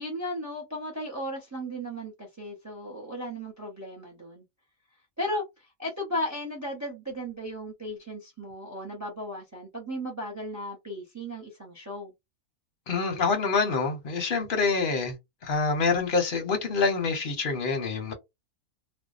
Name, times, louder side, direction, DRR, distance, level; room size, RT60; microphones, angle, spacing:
voice 1, 0.0-4.4 5.2-12.1, equal, 25° right, 0.3 m, -35 dB
voice 2, 12.9-15.1 15.4-18.1, left 4 dB, 50° left, 0.7 m, -26 dB
2.6 x 2.1 x 2.4 m
omnidirectional pair, 1.6 m